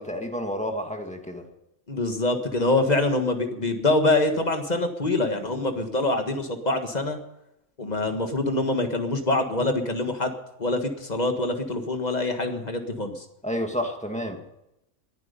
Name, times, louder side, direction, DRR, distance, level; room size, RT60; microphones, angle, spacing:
voice 1, 0.0-1.5 13.4-14.4, equal, 5° left, 3 dB, 1.8 m, -30 dB
voice 2, 1.9-7.2 7.8-10.3 10.6-13.2, left 2 dB, 30° left, 6 dB, 1.7 m, -25 dB
19.5 x 11.0 x 5.5 m, 0.86 s
omnidirectional pair, 1.4 m